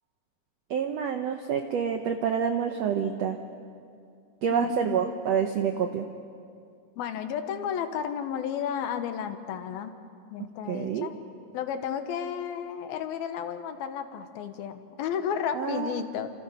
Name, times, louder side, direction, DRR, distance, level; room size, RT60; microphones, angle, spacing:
voice 1, 0.7-3.4 4.4-6.1 10.7-11.1 15.5-16.0, right 7 dB, 80° right, 6 dB, 1.5 m, -27 dB
voice 2, 4.5-5.0 7.0-10.0 10.3-11.2 11.5-16.3, left 8 dB, 80° left, 8 dB, 3.0 m, -32 dB
30.0 x 27.5 x 5.6 m, 2.3 s
omnidirectional pair, 4.3 m